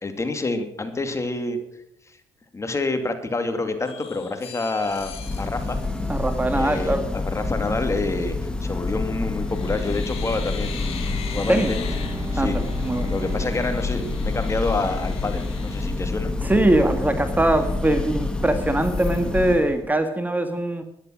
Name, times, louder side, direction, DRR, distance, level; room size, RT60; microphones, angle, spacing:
voice 1, 0.0-1.6 2.5-5.1 5.4-5.8 6.5-11.0 11.3-11.9 12.3-12.6 13.1-16.3, left 3 dB, 25° left, 8 dB, 2.4 m, -27 dB
sound 1, 3.8-6.9 8.7-9.0 9.4-16.7 17.1-17.2 17.5-18.4 18.8-19.3, left 7 dB, 65° left, 2.4 m, -42 dB
Church bell, 4.9-19.9, left 3 dB, 10° left, 2.2 m, -28 dB
voice 2, 6.1-7.1 11.5-11.7 12.4-13.1 16.4-20.8, right 1 dB, 15° right, 8 dB, 1.7 m, -22 dB
Bowed string instrument, 10.3-15.3, right 5 dB, 55° right, 1.5 m, -41 dB
13.0 x 10.5 x 6.3 m, 0.81 s
supercardioid pair, 70°, 11 cm